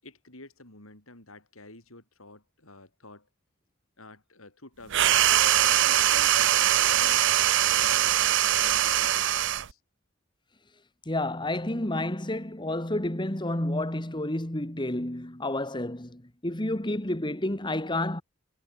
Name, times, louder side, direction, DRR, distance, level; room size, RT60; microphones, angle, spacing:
voice 1, 0.0-3.3 4.0-9.8, left 2 dB, 90° left, 7.9 m, -50 dB
sound 1, 4.9-9.7, right 12 dB, 60° right, 0.6 m, -22 dB
voice 2, 11.1-18.2, left 1 dB, 20° left, 2.0 m, -30 dB
head